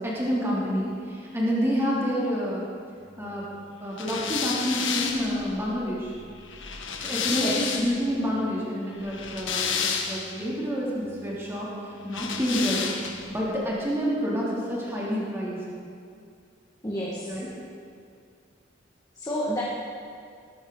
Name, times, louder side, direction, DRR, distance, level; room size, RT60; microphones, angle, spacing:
voice 1, 0.0-2.7 3.2-3.5 3.8-6.1 7.0-12.9 13.3-15.6 17.2-17.5, equal, 15° right, -6 dB, 3.0 m, -28 dB
sound 1, 4.0-8.1 9.0-10.4 12.1-13.3, left 6 dB, 70° left, 1.5 m, -30 dB
voice 2, 7.3-7.7 16.8-17.3 19.2-19.6, equal, 20° left, -7 dB, 1.9 m, -29 dB
18.5 x 14.0 x 4.0 m, 2.3 s
head